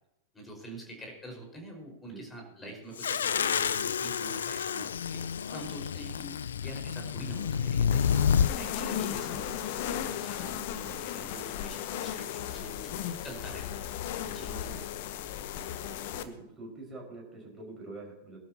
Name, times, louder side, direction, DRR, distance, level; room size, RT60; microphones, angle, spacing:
voice 1, 0.3-5.2 5.5-8.2 8.5-13.8 14.3-14.5, right 1 dB, 15° left, 1 dB, 5.1 m, -45 dB
sound 1, 3.0-8.5, left 7 dB, 65° left, 0.4 m, -29 dB
sound 2, 7.9-16.2, left 10 dB, 50° left, 1.0 m, -36 dB
voice 2, 8.6-9.4 14.2-15.1 16.1-18.4, right 3 dB, 10° right, -2 dB, 5.4 m, -46 dB
21.0 x 12.0 x 2.9 m, 0.86 s
figure-of-eight pair, 95°, 0 cm